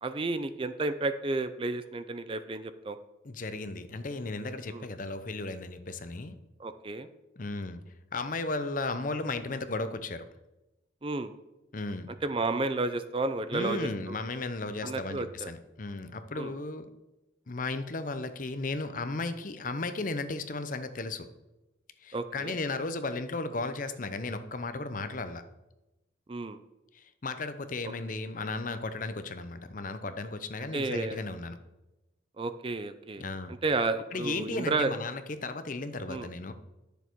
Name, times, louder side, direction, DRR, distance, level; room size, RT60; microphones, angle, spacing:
voice 1, 0.0-3.0 4.7-4.9 6.6-7.1 11.0-11.3 12.2-14.2 14.8-15.5 16.4-16.5 22.1-22.6 26.3-26.6 30.7-31.2 32.4-33.2 33.6-34.9 36.1-36.3, right 3 dB, 25° right, 11 dB, 0.4 m, -31 dB
voice 2, 3.2-6.4 7.4-7.8 8.1-10.2 11.7-12.1 13.5-16.9 17.5-21.3 22.0-25.4 26.9-31.6 33.2-33.5 34.1-36.5, left 3 dB, 45° left, 10 dB, 0.7 m, -35 dB
10.5 x 6.9 x 4.5 m, 0.98 s
head